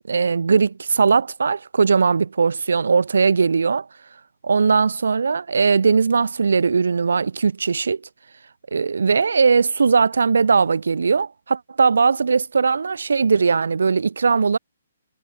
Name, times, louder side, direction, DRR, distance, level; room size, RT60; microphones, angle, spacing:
voice 1, 0.1-3.9 4.4-8.0 8.7-14.6, right 5 dB, 70° right, 0.5 m, -19 dB
figure-of-eight pair, 135°, 0 cm